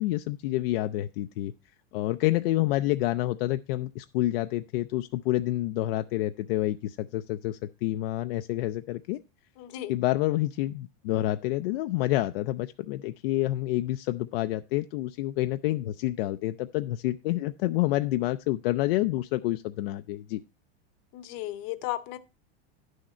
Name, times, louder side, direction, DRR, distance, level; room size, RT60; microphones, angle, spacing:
voice 1, 0.0-1.5 1.9-9.2 9.9-20.4, left 16 dB, 65° left, 0.5 m, -28 dB
voice 2, 9.6-9.9 21.1-22.2, left 14 dB, 40° left, 0.8 m, -35 dB
10.5 x 6.4 x 4.2 m
supercardioid pair, 165°, 32 cm